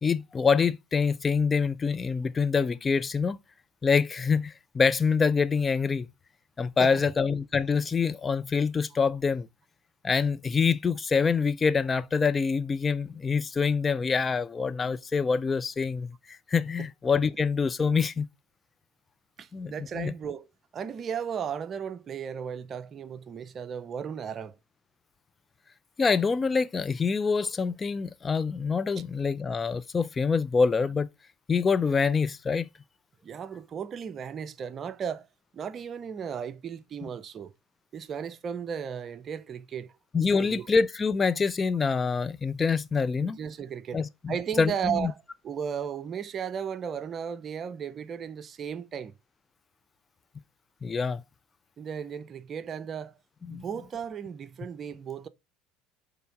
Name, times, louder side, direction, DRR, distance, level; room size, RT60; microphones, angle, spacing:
voice 1, 0.0-3.4 3.8-6.1 6.6-9.5 10.0-18.3 19.5-20.1 26.0-31.1 31.5-32.7 40.1-43.4 43.9-45.1 50.8-51.2 53.5-53.6, left 5 dB, 25° left, 0.5 m, -26 dB
voice 2, 19.4-20.5 20.7-24.6 33.2-35.3 35.5-37.5 37.9-40.0 40.4-40.7 43.2-45.2 45.4-49.1 51.8-53.1 53.5-55.3, right 7 dB, 40° right, 0.6 m, -35 dB
6.8 x 3.3 x 4.8 m
hypercardioid pair, 65°, 0 cm